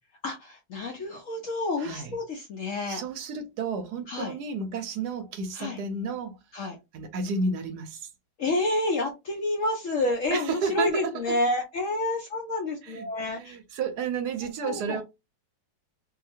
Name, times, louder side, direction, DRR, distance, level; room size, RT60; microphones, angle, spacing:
voice 1, 0.2-3.0 4.1-4.3 5.5-5.8 6.5-6.8 8.4-13.6 14.6-15.0, left 2 dB, 65° left, 0.8 m, -29 dB
voice 2, 1.8-2.1 2.9-6.4 6.9-8.1 10.3-11.4 12.8-13.1 13.3-15.0, right 4 dB, 70° right, 1.1 m, -32 dB
2.9 x 2.7 x 2.5 m
omnidirectional pair, 1.9 m